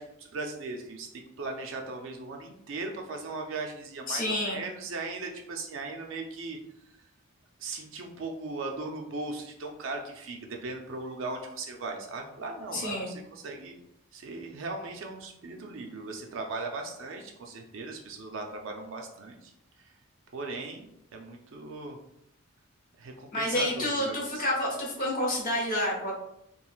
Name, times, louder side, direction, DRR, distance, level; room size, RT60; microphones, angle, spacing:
voice 1, 0.0-6.6 7.6-13.8 14.1-19.5 20.3-22.0 23.0-24.4 25.0-25.1, right 3 dB, 55° right, 2 dB, 0.4 m, -38 dB
voice 2, 4.1-4.6 12.7-13.1 23.3-26.1, left 1 dB, 40° left, -3 dB, 0.8 m, -29 dB
3.1 x 2.5 x 2.3 m, 0.78 s
head